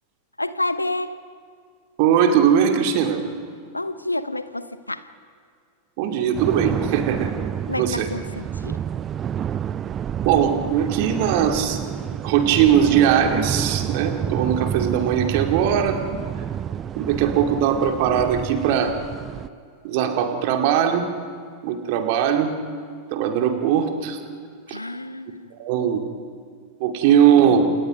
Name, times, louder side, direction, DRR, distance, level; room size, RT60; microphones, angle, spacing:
voice 1, 0.4-1.2 3.7-5.1 7.7-8.8 24.7-25.5, left 2 dB, 85° left, 14 dB, 0.9 m, -29 dB
voice 2, 2.0-3.2 6.0-7.3 7.8-8.1 10.2-11.8 12.2-16.0 17.0-19.0 19.8-21.1 21.6-22.5 23.1-24.2 24.7-24.8 25.5-26.0 26.8-27.8, right 8 dB, 45° right, 4 dB, 2.6 m, -20 dB
sound 1, 6.3-19.5, right 9 dB, 25° right, 0.6 m, -29 dB
29.5 x 28.0 x 5.3 m, 2.2 s
figure-of-eight pair, 90°, 0 cm